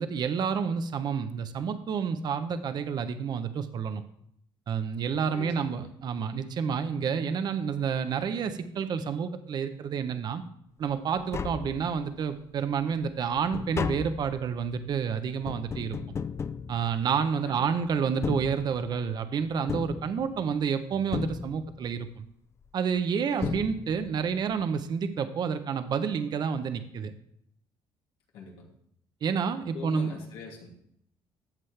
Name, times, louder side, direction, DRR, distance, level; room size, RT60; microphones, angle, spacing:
voice 1, 0.0-4.0 4.7-10.4 10.8-16.0 16.7-22.2 22.7-27.1 29.2-30.1, right 6 dB, 50° right, 9 dB, 0.8 m, -29 dB
voice 2, 5.3-5.9 17.4-17.9 23.4-23.7 28.3-28.7 29.7-30.7, left 4 dB, 85° left, -2 dB, 2.8 m, -44 dB
Tap, 10.9-11.0 11.2-12.3 12.7-17.5 18.1-19.1 19.7-20.7 21.1-22.0 23.0-23.1 23.4-24.2 24.5-24.6, left 6 dB, 30° left, 0.4 m, -36 dB
13.5 x 7.5 x 3.4 m, 0.70 s
cardioid pair, 120°, 9 cm